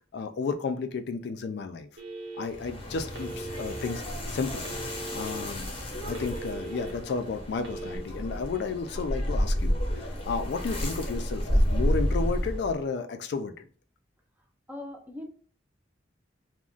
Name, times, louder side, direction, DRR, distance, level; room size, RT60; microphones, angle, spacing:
voice 1, 0.1-1.9 2.4-4.0 4.3-4.6 5.1-5.7 6.0-13.6, left 4 dB, 65° left, 7 dB, 0.3 m, -32 dB
Telephone, 2.0-2.7 3.1-3.9 4.6-5.4 5.8-6.9 7.6-8.0, right 3 dB, 85° right, 0.8 m, -39 dB
sound 1, 2.4-12.8, equal, 30° left, 0.7 m, -30 dB
voice 2, 14.7-15.3, left 1 dB, 10° right, 2 dB, 0.5 m, -39 dB
2.4 x 2.1 x 3.7 m, 0.43 s
head